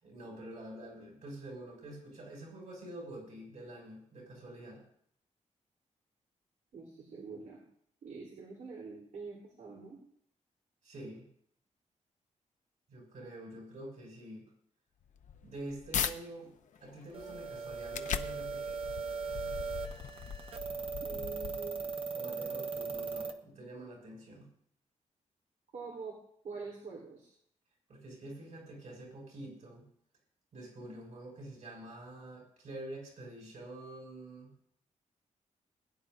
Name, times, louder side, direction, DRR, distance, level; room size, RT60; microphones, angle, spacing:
voice 1, 0.0-4.8 10.8-11.2 12.9-14.4 15.4-16.5 16.8-18.8 22.1-24.5 27.9-29.9 30.5-34.5, right 1 dB, 65° right, -2 dB, 5.8 m, -47 dB
voice 2, 6.7-7.6 8.0-10.0 21.0-21.9 25.7-26.2 26.4-27.3, right 4 dB, 85° right, -3 dB, 3.4 m, -45 dB
sound 1, 15.0-16.1 16.7-21.9, left 8 dB, 75° left, 0.7 m, -40 dB
sound 2, 17.1-23.3, right 5 dB, 45° right, 1.1 m, -39 dB
21.5 x 10.5 x 2.6 m, 0.67 s
wide cardioid pair, 165°, 13 cm